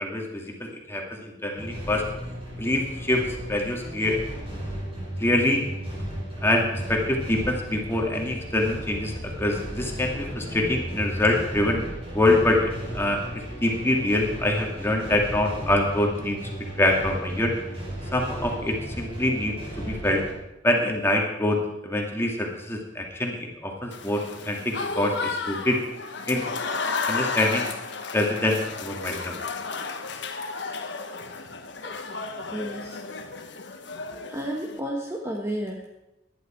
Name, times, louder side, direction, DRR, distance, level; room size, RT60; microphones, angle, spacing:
voice 1, 0.0-2.0 2.6-3.2 3.5-4.2 5.2-5.6 6.4-11.8 12.1-13.2 13.6-16.4 16.8-17.5 18.1-20.2 20.6-24.2 24.5-25.8 26.3-26.5 27.1-27.7 28.1-29.4, left 1 dB, 15° left, 0 dB, 2.4 m, -25 dB
sound 1, 1.6-20.3, equal, 30° right, 4.8 m, -35 dB
Applause / Crowd, 23.9-34.8, left 4 dB, 65° left, 1.3 m, -33 dB
voice 2, 32.5-33.0 34.1-36.0, right 1 dB, 15° right, 0 dB, 1.3 m, -32 dB
18.0 x 11.5 x 4.5 m, 0.93 s
head